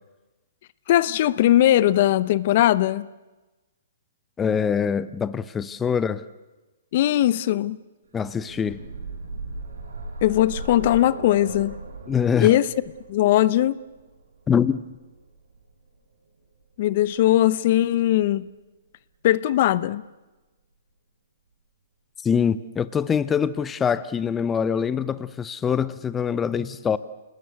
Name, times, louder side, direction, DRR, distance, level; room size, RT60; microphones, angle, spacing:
voice 1, 0.9-3.1 6.9-7.8 10.2-11.8 12.4-12.7 13.1-13.8 16.8-18.5 19.2-20.0, left 13 dB, 50° left, 0.7 m, -19 dB
voice 2, 4.4-6.2 8.1-8.8 12.1-12.6 14.5-14.9 22.2-27.0, left 7 dB, 15° left, 0.7 m, -24 dB
sound 1, 8.2-16.0 17.1-17.2 17.6-17.7, right 2 dB, 85° right, 5.2 m, -38 dB
28.0 x 19.5 x 8.2 m
hypercardioid pair, 140°, 0 cm